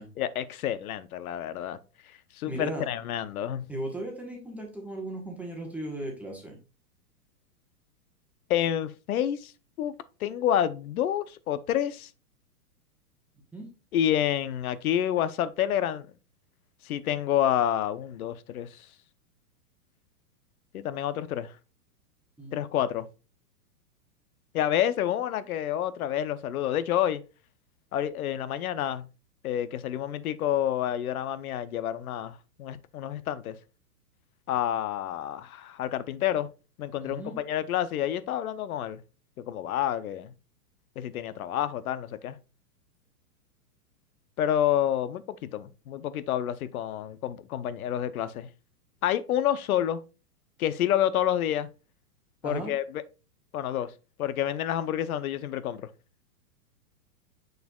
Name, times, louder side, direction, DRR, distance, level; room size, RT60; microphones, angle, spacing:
voice 1, 0.2-1.8 2.3-3.7 8.5-9.5 9.8-9.9 10.2-12.1 13.9-16.1 16.8-18.9 20.7-21.5 22.5-23.1 24.5-27.2 27.9-29.1 29.4-33.6 34.5-36.5 36.8-39.0 39.5-40.3 41.0-42.4 44.4-48.5 49.0-50.0 50.6-51.7 52.4-53.0 53.5-53.9 54.2-55.9, left 11 dB, 65° left, 0.8 m, -28 dB
voice 2, 2.5-2.9 3.7-6.6 13.5-13.7 22.4-22.6 37.0-37.4 52.4-52.7, right 1 dB, 5° right, 1.2 m, -36 dB
6.7 x 6.5 x 2.3 m
hypercardioid pair, 150°, 46 cm